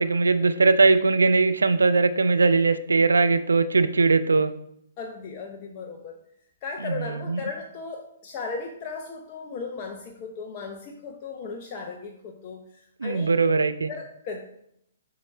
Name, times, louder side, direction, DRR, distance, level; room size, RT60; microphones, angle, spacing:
voice 1, 0.0-4.5 6.8-7.4 13.0-13.9, right 4 dB, 75° right, 12 dB, 0.4 m, -20 dB
voice 2, 5.0-6.2 6.6-13.3 13.9-14.4, left 4 dB, 35° left, 2 dB, 0.7 m, -36 dB
7.0 x 4.8 x 3.3 m, 0.73 s
figure-of-eight pair, 120°, 0 cm